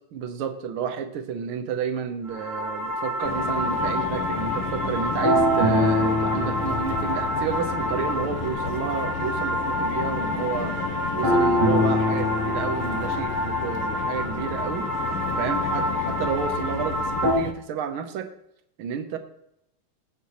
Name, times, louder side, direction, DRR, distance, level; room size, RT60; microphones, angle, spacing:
voice 1, 0.1-14.9 15.4-18.3 18.8-19.2, right 7 dB, 80° right, 8 dB, 1.7 m, -31 dB
sound 1, 2.3-17.3, left 1 dB, 35° right, 2.3 m, -26 dB
sound 2, 3.2-17.5, left 8 dB, 75° left, 1.5 m, -33 dB
15.5 x 6.2 x 3.0 m, 0.77 s
omnidirectional pair, 2.3 m